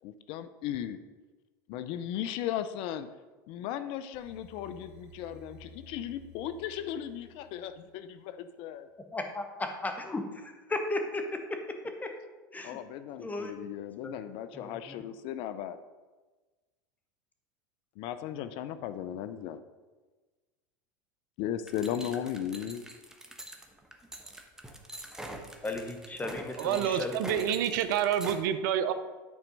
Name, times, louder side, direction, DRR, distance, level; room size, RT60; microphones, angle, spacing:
voice 1, 0.0-1.0 1.7-3.1 3.5-8.9 12.6-15.8 18.0-19.6 21.4-22.8, left 10 dB, 55° left, 11 dB, 0.5 m, -36 dB
sound 1, 4.1-8.2, left 1 dB, 20° right, 2.9 m, -54 dB
voice 2, 9.1-11.2 12.0-12.1 12.5-12.8 13.2-13.5 14.0-14.1 14.5-14.8 25.6-27.4, left 2 dB, 15° left, 5 dB, 1.2 m, -35 dB
sound 2, 21.7-28.4, right 1 dB, 5° right, 1.0 m, -44 dB
voice 3, 26.6-28.9, right 9 dB, 70° right, 11 dB, 0.6 m, -28 dB
9.5 x 4.4 x 5.3 m, 1.3 s
hypercardioid pair, 90°, 11 cm